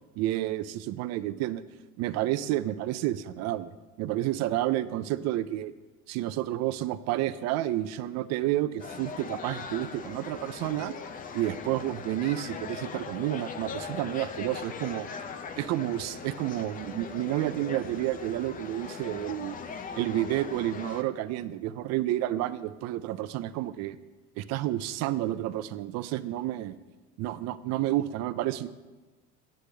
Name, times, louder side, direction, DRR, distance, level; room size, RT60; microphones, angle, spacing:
voice 1, 0.2-1.6 2.0-3.7 4.0-5.7 6.1-11.0 11.3-15.1 15.6-19.6 20.0-24.0 24.4-26.8 27.2-28.7, right 14 dB, 60° right, 15 dB, 0.4 m, -30 dB
sound 1, 8.8-21.0, left 5 dB, 30° left, 0.5 m, -40 dB
8.2 x 6.4 x 3.3 m, 1.2 s
cardioid pair, 120°, 31 cm